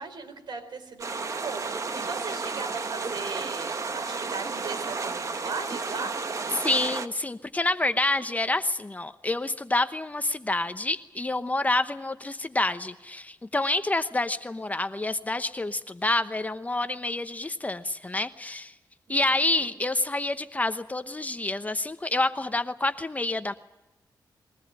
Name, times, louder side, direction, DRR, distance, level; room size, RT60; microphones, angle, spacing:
voice 1, 0.0-6.1 19.1-19.2 19.6-19.7, right 4 dB, 75° right, 5 dB, 4.2 m, -38 dB
sound 1, 1.0-7.1, right 4 dB, 45° right, 1.3 m, -32 dB
voice 2, 6.5-18.7 19.1-23.5, left 2 dB, 20° left, 10 dB, 0.9 m, -28 dB
22.5 x 18.0 x 8.9 m, 0.99 s
wide cardioid pair, 105°, 8 cm